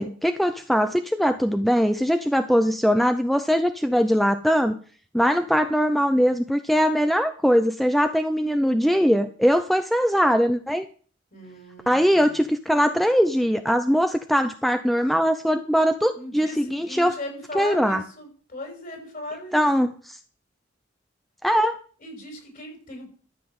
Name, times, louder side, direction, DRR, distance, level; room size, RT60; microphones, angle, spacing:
voice 1, 0.0-4.8 5.1-10.9 11.9-17.1 17.5-18.0 19.5-20.2 21.4-21.8, equal, ahead, 8 dB, 0.5 m, -21 dB
voice 2, 11.3-12.3 16.1-19.7 22.0-23.1, left 1 dB, 45° left, 2 dB, 5.6 m, -38 dB
13.5 x 5.9 x 7.8 m, 0.43 s
head